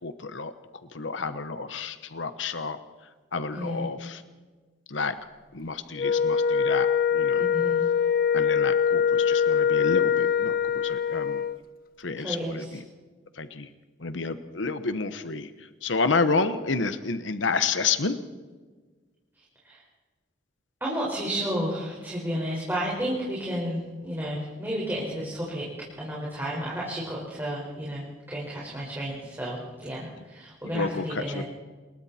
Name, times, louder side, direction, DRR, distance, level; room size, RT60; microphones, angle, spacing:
voice 1, 0.0-0.5 0.9-2.8 3.3-4.2 4.9-5.1 5.5-7.4 8.3-11.4 12.0-12.8 13.4-13.7 14.0-18.2 30.7-31.4, left 4 dB, 80° left, 11 dB, 1.1 m, -30 dB
voice 2, 3.5-3.9 7.4-7.8 12.2-12.5 19.3-19.8 20.8-25.7 26.0-31.4, equal, 10° right, -5 dB, 5.1 m, -32 dB
Wind instrument woodwind instrument, 6.0-11.6, left 7 dB, 55° left, 1.0 m, -23 dB
28.0 x 21.5 x 4.3 m, 1.4 s
head